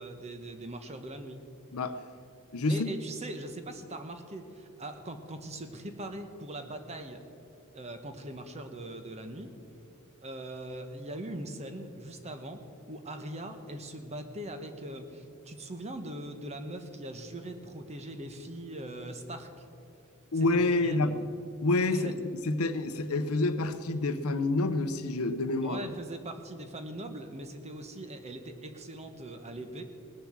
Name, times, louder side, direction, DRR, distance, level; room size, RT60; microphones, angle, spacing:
voice 1, 0.0-1.4 2.7-7.2 7.7-9.5 10.2-12.6 12.9-19.6 20.4-21.2 22.0-22.1 25.6-29.8, right 1 dB, 30° right, 7 dB, 1.0 m, -41 dB
voice 2, 2.5-2.9 20.3-21.1 21.6-25.8, left 2 dB, 70° left, 11 dB, 0.7 m, -28 dB
19.0 x 6.9 x 7.4 m, 2.5 s
head